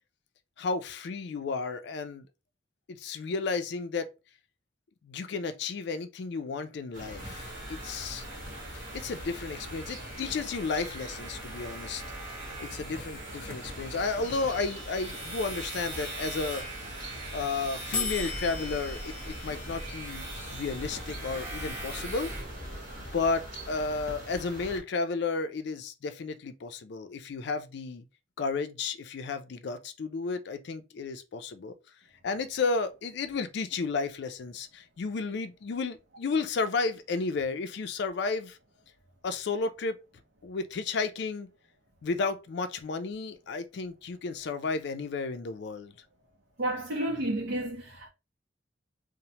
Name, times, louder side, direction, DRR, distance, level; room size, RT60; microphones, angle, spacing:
voice 1, 0.6-2.3 2.9-4.1 5.0-8.3 8.9-12.0 12.3-16.7 17.3-22.3 23.0-28.0 28.4-31.7 32.2-38.6 39.2-40.0 40.4-41.5 42.0-45.9, left 4 dB, 60° left, 0.4 m, -33 dB
sound 1, 6.9-24.8, right 1 dB, 45° right, 1.0 m, -42 dB
sound 2, 7.2-22.4, right 2 dB, 15° right, 0.9 m, -43 dB
sound 3, 14.2-16.2 17.9-23.9, left 3 dB, 25° left, 0.9 m, -41 dB
voice 2, 46.6-48.1, right 1 dB, 60° right, 0.6 m, -31 dB
3.0 x 2.1 x 2.8 m
head